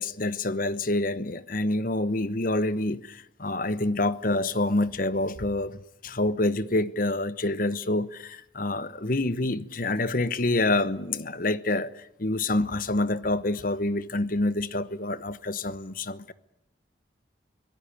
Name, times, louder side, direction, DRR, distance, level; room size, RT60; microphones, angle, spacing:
voice 1, 0.0-16.3, left 2 dB, 50° left, 1.0 m, -27 dB
25.5 x 17.5 x 10.0 m
head